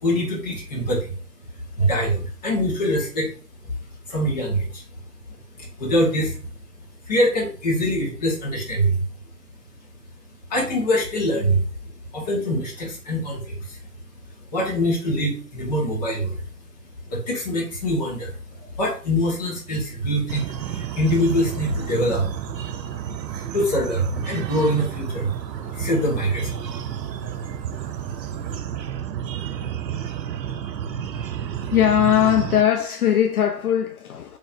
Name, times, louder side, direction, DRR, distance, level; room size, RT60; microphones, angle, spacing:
voice 1, 0.0-1.1 1.4-3.3 3.8-4.8 5.3-6.5 7.1-9.0 10.5-11.6 12.1-13.8 14.5-16.4 17.1-22.3 23.3-25.3 25.6-26.6 27.6-27.7, equal, 25° left, 1.2 m, -24 dB
sound 1, 20.3-32.6, right 9 dB, 90° right, 0.6 m, -31 dB
voice 2, 31.7-34.4, left 10 dB, 65° left, 0.5 m, -20 dB
4.1 x 3.1 x 2.5 m
hypercardioid pair, 160°, 48 cm